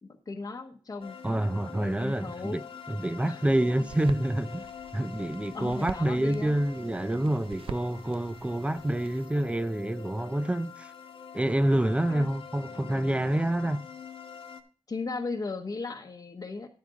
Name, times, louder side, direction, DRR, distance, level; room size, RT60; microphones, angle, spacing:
voice 1, 0.0-1.2 1.8-2.6 3.2-3.4 5.5-6.5 12.1-12.3 12.9-13.4 14.9-16.7, left 3 dB, 40° left, 1.0 m, -37 dB
sound 1, 1.0-14.6, left 6 dB, 85° left, 1.2 m, -45 dB
voice 2, 1.2-2.6 2.9-4.7 4.9-10.9 11.3-13.8, right 1 dB, 15° right, 0.5 m, -27 dB
sound 2, 3.8-9.3, right 7 dB, 90° right, 0.5 m, -45 dB
9.9 x 8.7 x 3.7 m
wide cardioid pair, 125°, 9 cm